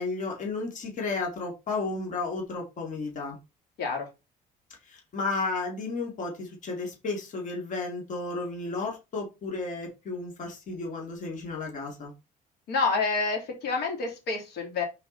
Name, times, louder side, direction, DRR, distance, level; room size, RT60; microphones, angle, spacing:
voice 1, 0.0-3.4 4.9-12.1, left 3 dB, 50° left, 2.5 m, -33 dB
voice 2, 12.7-14.8, left 4 dB, 75° left, 2.7 m, -28 dB
5.3 x 4.6 x 3.9 m
cardioid pair, 110°, 17 cm